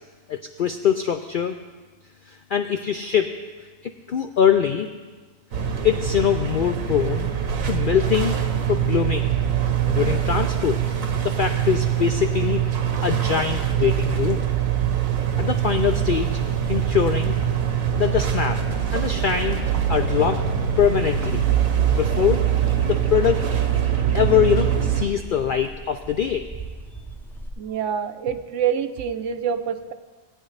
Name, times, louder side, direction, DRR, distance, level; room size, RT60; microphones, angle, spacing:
voice 1, 0.3-1.5 2.5-3.3 3.8-4.9 5.8-7.3 7.7-8.4 8.7-9.3 9.9-10.8 11.2-12.6 13.0-14.4 15.4-16.4 16.7-17.3 17.7-18.6 18.9-20.4 20.8-21.4 21.9-22.5 22.9-23.5 24.1-26.5, left 8 dB, 70° left, 6 dB, 0.5 m, -23 dB
sound 1, 5.5-25.0, right 9 dB, 85° right, 1.3 m, -23 dB
sound 2, 20.5-27.5, right 2 dB, ahead, 0.5 m, -41 dB
voice 2, 27.6-29.9, right 8 dB, 70° right, 9 dB, 0.9 m, -26 dB
18.0 x 9.1 x 3.2 m, 1.4 s
omnidirectional pair, 1.4 m